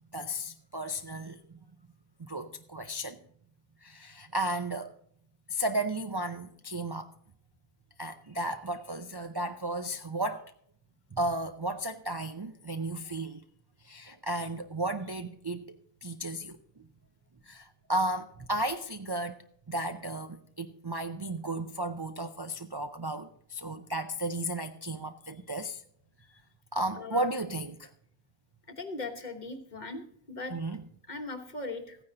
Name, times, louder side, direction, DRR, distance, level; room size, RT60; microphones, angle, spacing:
voice 1, 0.1-1.6 2.2-3.2 3.8-4.9 5.5-7.1 8.0-10.4 11.1-13.4 13.8-16.8 17.5-19.4 19.7-25.8 26.7-27.9 30.5-30.8, right 1 dB, 30° right, 0.5 m, -34 dB
voice 2, 26.9-27.3 28.8-30.5 31.1-32.0, left 3 dB, 45° left, 1.3 m, -39 dB
15.0 x 9.7 x 3.9 m
omnidirectional pair, 1.1 m